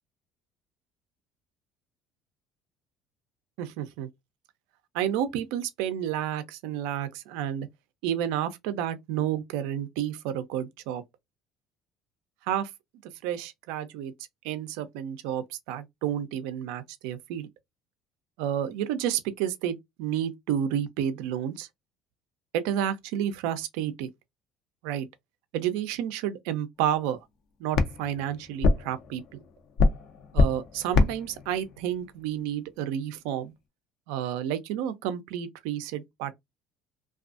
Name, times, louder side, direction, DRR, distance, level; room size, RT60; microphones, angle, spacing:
voice 1, 3.6-4.1 4.9-7.7 8.0-11.0 12.5-12.7 13.0-14.1 14.4-17.5 18.4-21.7 22.5-24.1 24.8-25.1 25.5-27.2 27.6-29.2 30.3-33.5 34.1-36.3, right 10 dB, 80° right, 0.4 m, -30 dB
sound 1, 26.8-33.1, left 3 dB, 65° left, 0.5 m, -27 dB
2.5 x 2.3 x 2.4 m
supercardioid pair, 85°, 0 cm